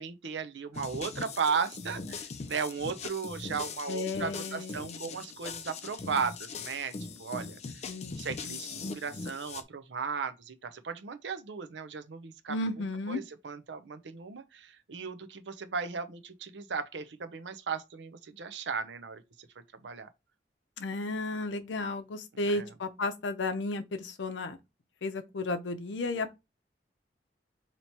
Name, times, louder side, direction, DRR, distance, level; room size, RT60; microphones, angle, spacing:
voice 1, 0.0-6.9 7.2-7.6 8.2-12.6 13.1-19.2 19.8-20.1 22.4-22.7, right 5 dB, 75° right, 0.6 m, -36 dB
sound 1, 0.7-9.6, left 4 dB, 35° left, 0.4 m, -41 dB
voice 2, 3.9-5.1 7.9-8.2 12.5-13.2 20.8-24.6 25.0-26.3, left 2 dB, 80° left, 0.6 m, -33 dB
2.9 x 2.8 x 4.5 m
head